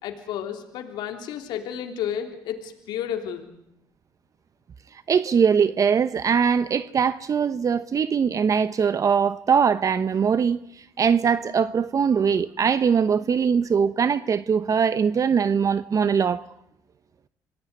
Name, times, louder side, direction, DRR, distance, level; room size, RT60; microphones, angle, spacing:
voice 1, 0.0-3.5, left 9 dB, 85° left, 3.5 m, -32 dB
voice 2, 4.9-16.5, right 6 dB, 45° right, 1.0 m, -22 dB
27.0 x 19.5 x 9.7 m
supercardioid pair, 70°, 8 cm